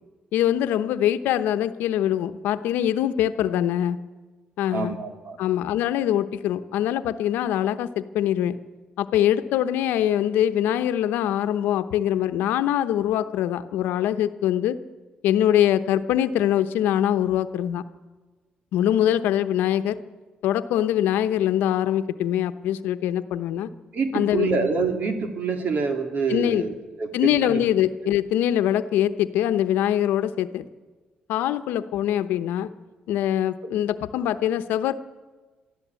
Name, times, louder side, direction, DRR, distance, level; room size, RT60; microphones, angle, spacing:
voice 1, 0.3-4.0 4.6-5.0 5.4-8.6 9.0-14.8 15.2-17.8 18.7-20.0 20.4-23.7 24.1-24.5 26.3-26.6 27.1-30.6 31.3-32.7 33.1-34.9, left 11 dB, 85° left, 11 dB, 0.9 m, -23 dB
voice 2, 4.7-5.4 23.9-27.6, right 4 dB, 60° right, 6 dB, 2.9 m, -26 dB
23.5 x 13.5 x 8.3 m, 1.3 s
cardioid pair, 85°, 3 cm